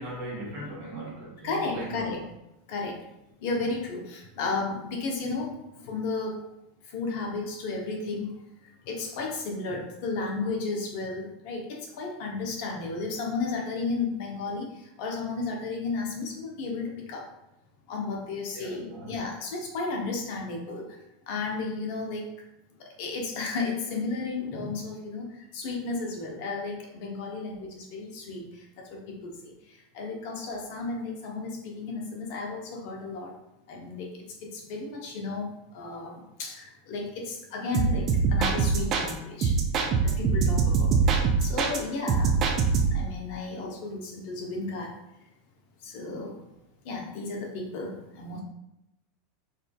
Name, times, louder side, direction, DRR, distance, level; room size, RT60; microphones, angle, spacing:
voice 1, 0.0-2.2 18.5-19.1, right 1 dB, 65° right, 1.5 m, -39 dB
voice 2, 1.4-2.2 2.7-3.0 3.4-6.4 6.9-8.4 8.8-17.2 17.9-21.0 21.3-22.3 22.8-33.4 33.7-34.2 34.5-39.5 40.0-42.4 42.9-45.0 45.8-46.4 46.8-48.4, left 3 dB, 60° left, 0.8 m, -33 dB
sound 1, 37.7-39.1 39.4-41.8 42.1-43.1, right 5 dB, 40° right, 0.5 m, -24 dB
4.1 x 2.6 x 2.3 m
hypercardioid pair, 95°, 0 cm